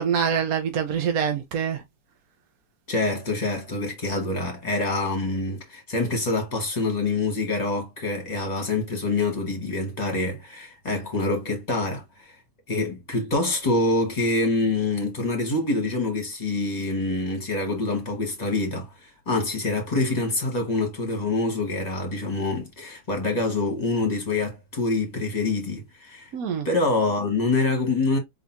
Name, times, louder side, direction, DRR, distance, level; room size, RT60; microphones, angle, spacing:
voice 1, 0.0-1.8 26.3-26.7, right 7 dB, 60° right, 1.1 m, -25 dB
voice 2, 2.9-12.3 12.7-26.3 26.6-28.2, left 2 dB, 25° left, 1.5 m, -26 dB
4.0 x 3.6 x 2.8 m
omnidirectional pair, 2.0 m